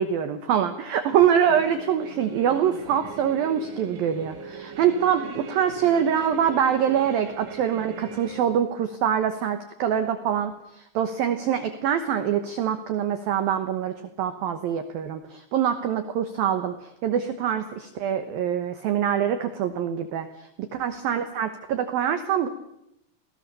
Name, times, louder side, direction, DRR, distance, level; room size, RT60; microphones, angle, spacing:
voice 1, 0.0-22.5, right 9 dB, 85° right, 9 dB, 2.0 m, -24 dB
sound 1, 1.1-8.4, right 6 dB, 65° right, 4.9 m, -41 dB
28.5 x 19.0 x 6.9 m, 0.83 s
omnidirectional pair, 6.0 m